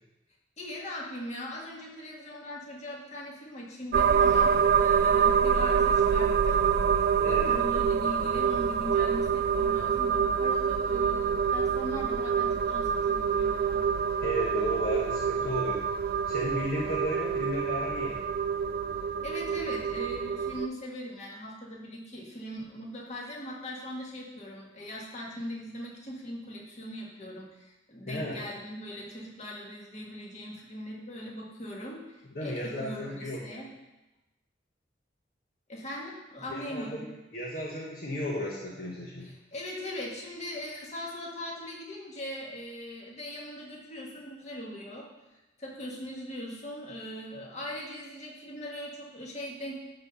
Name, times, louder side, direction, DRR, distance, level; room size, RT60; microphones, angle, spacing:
voice 1, 0.6-13.9 19.2-33.7 35.7-37.1 39.2-45.1 45.6-49.8, equal, 40° left, -3 dB, 1.9 m, -40 dB
sound 1, 3.9-20.7, right 7 dB, 55° right, 0.3 m, -26 dB
voice 2, 7.2-7.5 14.2-15.8 16.3-18.2 28.1-28.4 32.3-33.4 36.5-37.0 37.3-39.3, left 1 dB, 55° left, -4 dB, 1.4 m, -34 dB
12.0 x 4.2 x 5.8 m, 1.0 s
head